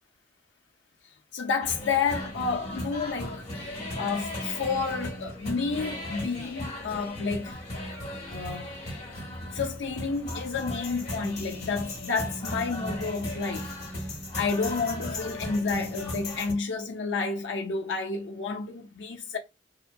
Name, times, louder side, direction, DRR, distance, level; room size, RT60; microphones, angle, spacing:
voice 1, 1.3-3.7 4.0-7.6 8.3-8.8 9.5-13.7 14.0-19.4, left 4 dB, 85° left, 0.6 m, -30 dB
sound 1, 1.6-16.5, left 1 dB, 40° left, 1.3 m, -36 dB
2.8 x 2.2 x 2.6 m
head